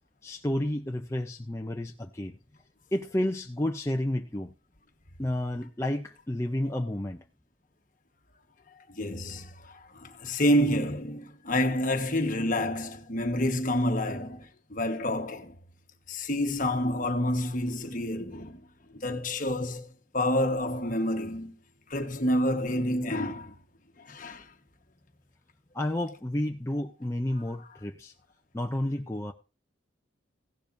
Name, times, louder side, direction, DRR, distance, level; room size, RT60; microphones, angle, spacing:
voice 1, 0.2-2.4 2.9-4.5 5.2-7.2 25.7-28.1 28.5-29.3, left 1 dB, 15° left, 0.5 m, -31 dB
voice 2, 8.9-15.6 16.1-18.6 18.9-19.9 20.1-21.6 21.9-23.6 24.0-24.5, left 1 dB, 40° left, 1.3 m, -28 dB
16.0 x 12.0 x 2.6 m
head